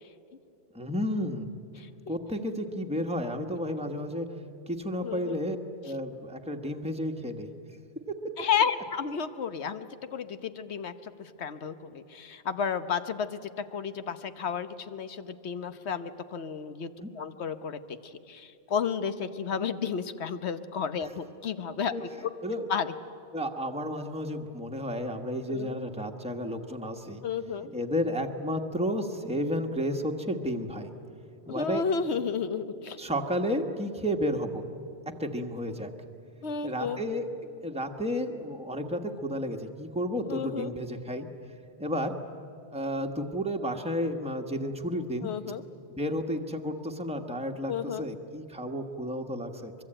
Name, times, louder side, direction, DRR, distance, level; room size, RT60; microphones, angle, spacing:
voice 1, 0.7-1.5 2.1-4.3 4.7-5.6 5.8-7.5 17.0-17.1 21.9-22.0 22.4-22.7 23.3-27.2 27.7-30.9 31.5-31.8 33.0-34.6 35.2-35.9 36.6-37.3 37.6-41.3 41.8-42.1 42.7-45.3 45.9-49.7, equal, 5° right, 3 dB, 1.3 m, -32 dB
voice 2, 5.0-5.3 8.4-22.3 22.7-22.9 25.5-25.8 27.2-27.7 31.5-33.0 36.4-37.0 40.3-40.7 45.2-45.6 47.7-48.1, left 6 dB, 80° left, 11 dB, 1.2 m, -32 dB
24.0 x 22.5 x 8.8 m, 2.8 s
omnidirectional pair, 1.1 m